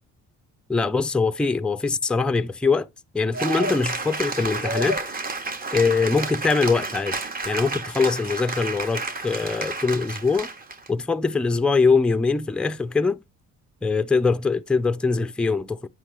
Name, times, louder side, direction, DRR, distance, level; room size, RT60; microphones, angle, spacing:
voice 1, 0.7-2.9 3.1-5.0 5.7-7.2 7.5-10.5 10.9-13.2 13.8-15.9, left 4 dB, 5° left, 0.3 m, -22 dB
Cheering / Applause, 3.3-10.9, right 3 dB, 30° right, 1.0 m, -30 dB
9.2 x 3.3 x 6.0 m
cardioid pair, 90°, 30 cm